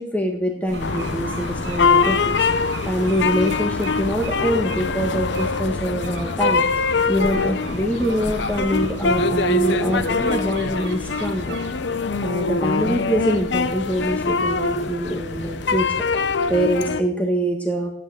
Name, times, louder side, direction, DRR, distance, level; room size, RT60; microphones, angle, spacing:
voice 1, 0.0-11.6 11.9-12.0 12.2-15.9 16.5-17.9, equal, 10° left, 1 dB, 1.5 m, -24 dB
sound 1, 0.7-15.8, left 1 dB, 40° left, 1.6 m, -36 dB
sound 2, 0.7-12.4, right 5 dB, 70° right, 1.2 m, -41 dB
sound 3, 0.8-17.0, left 4 dB, 70° left, 0.7 m, -23 dB
14.0 x 9.6 x 7.8 m, 0.73 s
head